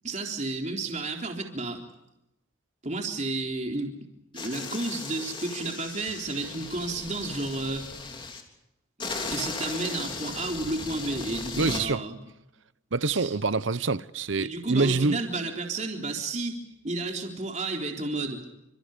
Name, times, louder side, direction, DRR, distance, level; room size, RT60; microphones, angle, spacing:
voice 1, 0.0-1.8 2.8-3.9 4.3-7.9 9.3-12.2 13.0-13.3 14.4-18.4, right 2 dB, 35° right, 3.7 m, -32 dB
sound 1, 4.3-8.4 9.0-11.8, left 3 dB, 25° left, 3.5 m, -37 dB
voice 2, 11.6-12.0 12.9-15.2, right 3 dB, 70° right, 0.8 m, -26 dB
30.0 x 26.5 x 5.1 m
head